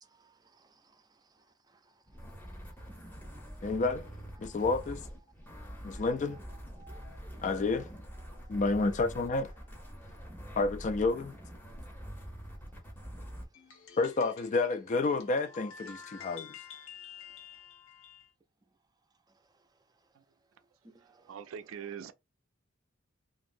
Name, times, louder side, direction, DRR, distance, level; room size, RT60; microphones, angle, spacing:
voice 1, 0.0-3.6 4.3-4.6 5.5-6.4 6.8-7.5 8.2-8.6 9.9-10.6 11.7-12.8 13.1-13.7 17.2-17.4 19.3-20.2 20.8-22.1, right 3 dB, 20° right, 0.5 m, -64 dB
sound 1, 2.1-13.5, equal, 10° left, 0.7 m, -45 dB
voice 2, 3.6-4.1 4.4-5.1 5.8-6.4 7.4-7.9 8.5-9.5 10.6-11.3 14.0-16.5, left 3 dB, 40° left, 0.4 m, -30 dB
sound 2, 13.5-18.3, left 7 dB, 80° left, 0.8 m, -49 dB
voice 3, 21.3-22.1, right 7 dB, 85° right, 0.4 m, -42 dB
3.0 x 2.5 x 2.6 m
head